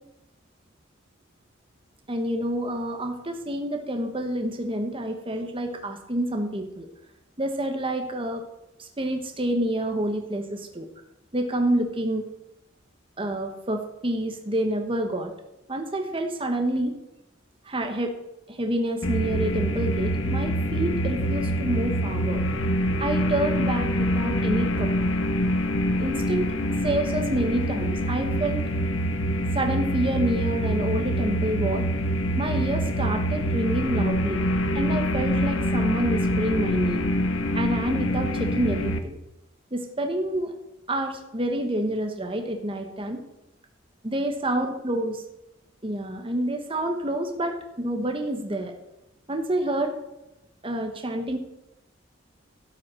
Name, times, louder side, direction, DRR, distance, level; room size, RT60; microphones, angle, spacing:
voice 1, 2.1-6.9 7.4-8.4 8.8-10.9 11.3-12.2 13.2-15.3 15.7-16.9 17.6-18.1 18.5-22.4 23.0-24.9 26.0-26.5 26.8-28.6 29.5-31.9 32.4-34.4 34.7-37.1 37.5-39.2 39.7-40.5 40.9-43.2 44.0-45.2 45.8-48.7 49.3-49.9 50.6-51.4, right 1 dB, 25° right, 4 dB, 1.3 m, -28 dB
sound 1, 19.0-39.0, equal, 85° left, 1.2 m, -25 dB
12.0 x 5.9 x 7.6 m, 0.89 s
head